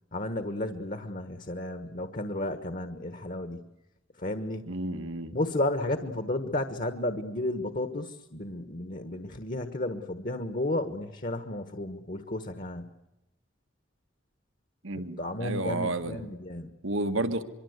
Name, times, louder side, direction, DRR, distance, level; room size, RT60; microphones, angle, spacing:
voice 1, 0.1-3.6 4.2-4.7 5.3-12.9 15.2-16.7, left 1 dB, 45° left, 9 dB, 1.4 m, -33 dB
voice 2, 4.7-5.3 14.8-16.3 16.8-17.4, right 2 dB, 85° right, 9 dB, 1.7 m, -31 dB
25.0 x 24.0 x 8.1 m, 0.97 s
head